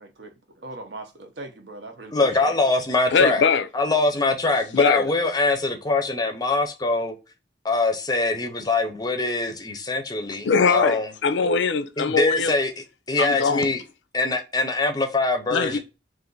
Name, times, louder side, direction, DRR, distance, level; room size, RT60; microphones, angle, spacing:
voice 1, 0.0-2.1 2.4-2.6, right 2 dB, 65° right, 0.8 m, -40 dB
voice 2, 2.1-3.4 3.7-7.1 7.6-11.1 12.0-13.8 14.1-15.8, left 2 dB, 20° left, 0.6 m, -23 dB
voice 3, 3.1-3.7 4.7-5.1 10.4-12.5 13.2-13.7 15.5-15.8, left 5 dB, 80° left, 0.4 m, -21 dB
2.5 x 2.5 x 3.7 m
head